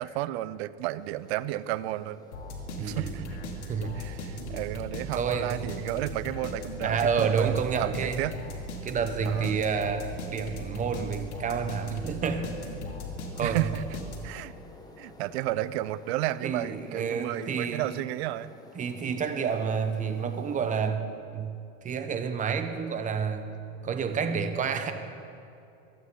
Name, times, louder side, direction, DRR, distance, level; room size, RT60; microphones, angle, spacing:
voice 1, 0.0-2.2 2.8-3.3 3.9-8.4 9.2-9.5 13.4-14.0 14.2-14.5 15.0-18.5, right 15 dB, 65° right, 17 dB, 0.6 m, -32 dB
sound 1, 1.0-20.9, left 2 dB, 10° left, 1.1 m, -52 dB
sound 2, 2.3-14.5, equal, 90° left, 2.4 m, -38 dB
voice 2, 2.8-3.2 3.7-3.9 5.2-5.7 6.8-8.2 8.8-12.5 13.4-13.6 16.4-17.8 18.7-21.1 21.3-21.5 21.8-23.5 23.8-24.9, right 6 dB, 20° right, 8 dB, 1.0 m, -29 dB
24.0 x 8.6 x 3.8 m, 2.7 s
supercardioid pair, 125°, 34 cm